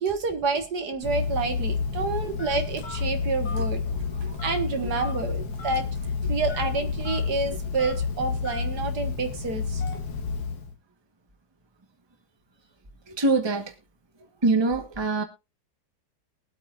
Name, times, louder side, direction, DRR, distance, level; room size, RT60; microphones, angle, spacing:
voice 1, 0.0-3.8 4.4-5.8 6.3-10.0, right 4 dB, 80° right, 2.2 m, -29 dB
Telephone, 1.0-10.7, left 5 dB, 70° left, 1.8 m, -30 dB
voice 2, 3.9-4.4 4.8-5.0 13.1-13.7 14.4-15.2, right 3 dB, 15° right, 1.3 m, -25 dB
22.0 x 8.3 x 2.5 m
omnidirectional pair, 1.7 m